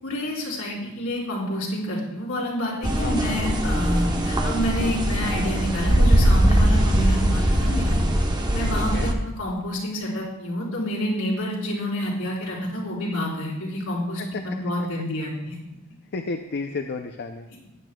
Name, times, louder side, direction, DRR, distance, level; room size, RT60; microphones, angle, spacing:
voice 1, 0.0-8.0 8.5-15.6, equal, 65° left, -5 dB, 3.9 m, -28 dB
sound 1, 2.8-9.1, right 1 dB, 20° right, 0.9 m, -21 dB
voice 2, 8.8-9.1 14.2-14.4 16.1-17.5, left 4 dB, 50° left, 6 dB, 0.5 m, -32 dB
15.0 x 10.5 x 2.3 m, 0.93 s
head